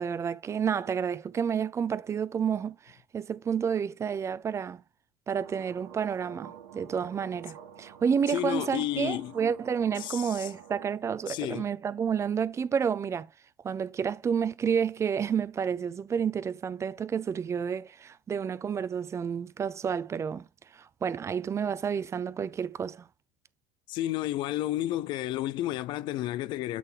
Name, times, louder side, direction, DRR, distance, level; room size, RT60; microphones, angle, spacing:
voice 1, 0.0-4.8 5.3-13.3 13.6-20.4 20.7-23.1, right 7 dB, 30° right, 0.6 m, -30 dB
sound 1, 5.3-10.9, right 9 dB, 75° right, 1.4 m, -49 dB
voice 2, 8.3-9.3 10.0-10.5 11.3-11.7 23.9-26.8, left 14 dB, 55° left, 0.5 m, -31 dB
8.4 x 3.8 x 3.8 m
hypercardioid pair, 75°, 10 cm